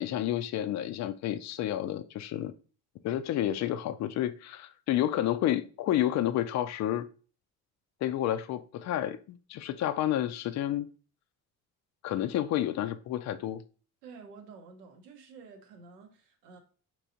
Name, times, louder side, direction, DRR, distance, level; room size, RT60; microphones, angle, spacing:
voice 1, 0.0-2.5 3.0-7.1 8.0-10.9 12.0-13.6, left 12 dB, 40° left, 0.4 m, -30 dB
voice 2, 14.0-16.6, right 5 dB, 80° right, 0.8 m, -50 dB
4.5 x 3.0 x 2.6 m
figure-of-eight pair, 45°, 47 cm